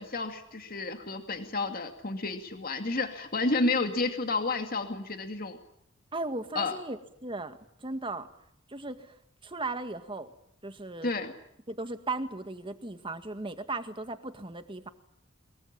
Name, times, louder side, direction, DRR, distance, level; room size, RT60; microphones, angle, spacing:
voice 1, 0.0-5.6 6.5-6.8 11.0-11.3, left 3 dB, 50° left, 6 dB, 2.4 m, -31 dB
voice 2, 6.1-8.3 8.7-9.1 9.4-10.3 10.6-11.1 11.7-14.9, right 2 dB, 25° right, 8 dB, 1.9 m, -36 dB
23.5 x 23.0 x 8.8 m, 0.73 s
head